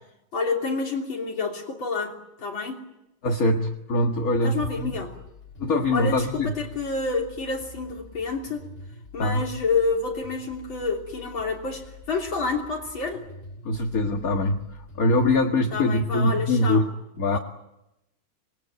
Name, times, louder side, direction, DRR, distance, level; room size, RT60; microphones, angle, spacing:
voice 1, 0.3-2.8 4.4-5.1 5.9-8.6 9.1-13.3 15.7-16.9 17.3-17.4, left 4 dB, 75° left, 0 dB, 4.0 m, -28 dB
voice 2, 3.2-4.9 5.6-6.5 9.2-9.5 13.7-16.9 17.2-17.4, left 2 dB, 45° left, 4 dB, 2.0 m, -23 dB
sound 1, 4.6-15.5, left 4 dB, 30° left, 2.1 m, -46 dB
27.0 x 21.0 x 9.3 m, 0.88 s
omnidirectional pair, 2.2 m